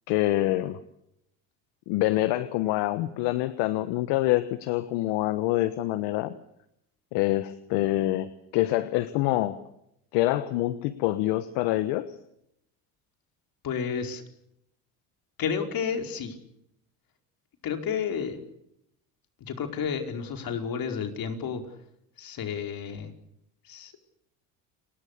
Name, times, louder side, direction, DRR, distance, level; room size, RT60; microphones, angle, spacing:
voice 1, 0.1-0.8 1.9-6.4 7.1-9.6 10.1-12.1, left 16 dB, 75° left, 13 dB, 1.4 m, -26 dB
voice 2, 13.6-14.2 15.4-16.4 17.6-18.4 19.4-21.6 22.2-23.1 23.6-23.9, left 7 dB, 55° left, 5 dB, 4.9 m, -31 dB
29.5 x 20.5 x 6.8 m, 0.78 s
supercardioid pair, 80°, 41 cm